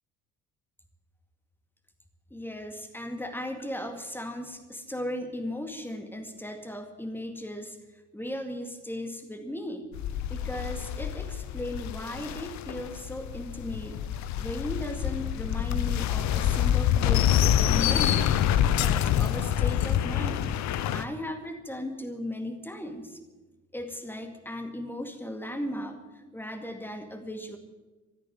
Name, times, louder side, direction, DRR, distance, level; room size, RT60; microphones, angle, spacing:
voice 1, 2.3-7.8 8.1-9.9 10.3-14.0 14.4-20.6 20.9-23.2 23.7-27.6, left 1 dB, 5° left, 6 dB, 2.1 m, -37 dB
Titanic Collision, 9.9-21.0, left 10 dB, 45° left, 0.8 m, -26 dB
14.0 x 9.3 x 9.4 m, 1.2 s
figure-of-eight pair, 50°, 38 cm